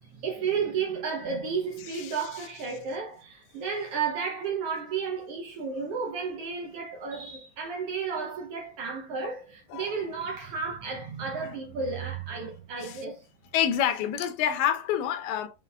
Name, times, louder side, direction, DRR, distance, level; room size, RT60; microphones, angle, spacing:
voice 1, 0.0-13.3, right 5 dB, 70° right, 1.5 m, -32 dB
voice 2, 1.9-2.5 9.7-9.9 11.4-11.6 12.8-13.0 13.5-15.5, left 9 dB, 80° left, 2.0 m, -28 dB
5.8 x 3.6 x 2.3 m
omnidirectional pair, 3.4 m